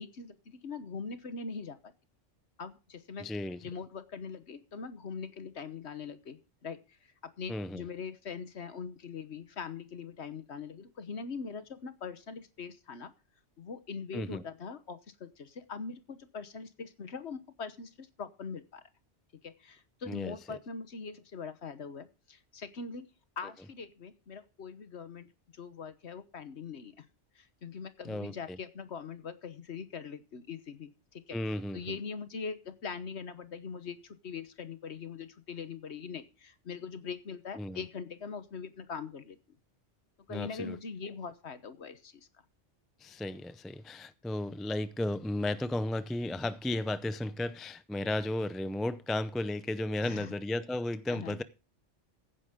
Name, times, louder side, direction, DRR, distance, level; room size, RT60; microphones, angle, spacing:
voice 1, 0.0-1.9 2.6-3.3 3.6-13.1 13.6-18.8 19.4-23.1 23.4-25.3 25.5-27.1 27.3-31.4 31.7-39.4 40.3-42.3 50.0-50.3 51.1-51.4, left 5 dB, 65° left, 1.4 m, -42 dB
voice 2, 3.2-3.6 7.5-7.8 14.1-14.4 20.1-20.3 28.0-28.6 31.3-31.9 37.6-37.8 40.3-40.8 43.0-51.4, left 1 dB, ahead, 0.4 m, -34 dB
15.5 x 9.9 x 3.7 m
omnidirectional pair, 1.2 m